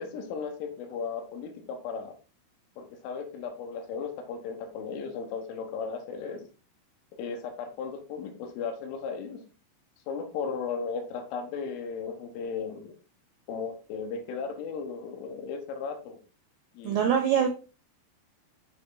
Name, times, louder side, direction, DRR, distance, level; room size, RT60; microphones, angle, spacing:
voice 1, 0.0-2.1 2.8-6.5 7.2-9.4 10.1-12.9 13.5-16.2 16.8-17.1, left 5 dB, 75° left, 3 dB, 3.6 m, -36 dB
voice 2, 16.8-17.5, right 8 dB, 75° right, 2 dB, 2.4 m, -23 dB
7.8 x 5.5 x 3.8 m, 0.34 s
omnidirectional pair, 6.0 m